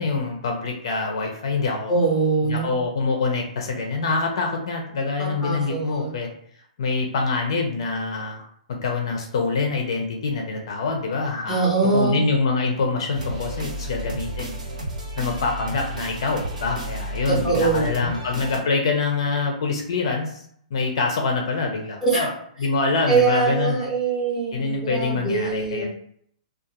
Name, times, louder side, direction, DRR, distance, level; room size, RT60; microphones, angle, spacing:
voice 1, 0.0-2.0 2.5-6.3 6.8-8.4 8.7-11.6 11.9-14.6 15.2-20.4 20.7-22.3 22.6-23.8 24.5-25.9, left 4 dB, 45° left, 2 dB, 0.4 m, -25 dB
voice 2, 1.9-2.8 5.2-6.1 11.5-12.2 17.3-18.1 22.0-22.2 23.1-25.9, right 4 dB, 10° right, -6 dB, 0.6 m, -23 dB
sound 1, 13.1-18.6, right 1 dB, 75° right, 0.9 m, -32 dB
2.3 x 2.3 x 2.8 m, 0.65 s
hypercardioid pair, 180°, 4 cm